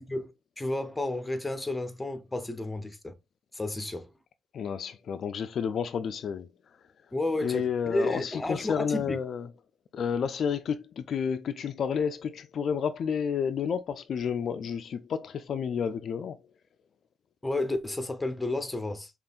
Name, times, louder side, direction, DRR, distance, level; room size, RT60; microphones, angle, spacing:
voice 1, 0.0-3.1 3.5-4.1 7.1-9.2 17.4-19.1, left 2 dB, 10° left, 0.7 m, -32 dB
voice 2, 4.5-6.5 7.4-9.5 9.9-16.4, left 7 dB, 60° left, 0.3 m, -30 dB
5.2 x 2.4 x 2.4 m
cardioid pair, 90°, 0 cm